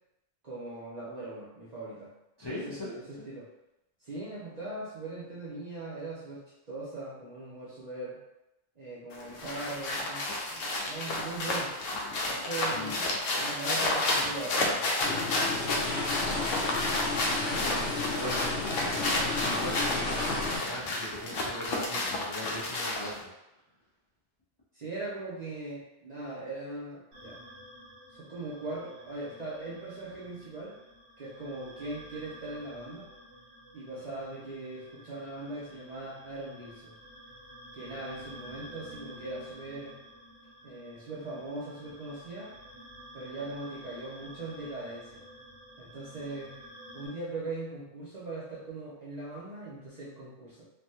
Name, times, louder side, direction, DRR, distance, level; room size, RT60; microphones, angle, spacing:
voice 1, 0.4-2.1 2.5-3.5 4.0-8.2 8.8-11.8 12.2-15.8 17.4-17.6 24.7-27.4 28.1-30.8 31.2-33.1 33.7-37.0 37.7-40.0 40.6-42.5 43.1-45.2 45.8-46.6 46.9-50.7, right 2 dB, 45° right, -7 dB, 0.6 m, -40 dB
voice 2, 2.4-3.3 12.7-13.0 18.0-23.3 34.1-34.2, left 1 dB, 35° left, -9 dB, 0.3 m, -40 dB
sound 1, 9.1-23.2, left 2 dB, 80° left, 1.0 m, -31 dB
sound 2, 15.0-20.6, left 2 dB, 55° left, 0.8 m, -32 dB
sound 3, 27.1-47.1, equal, 75° right, 1.5 m, -51 dB
3.3 x 2.2 x 2.7 m, 0.93 s
omnidirectional pair, 1.3 m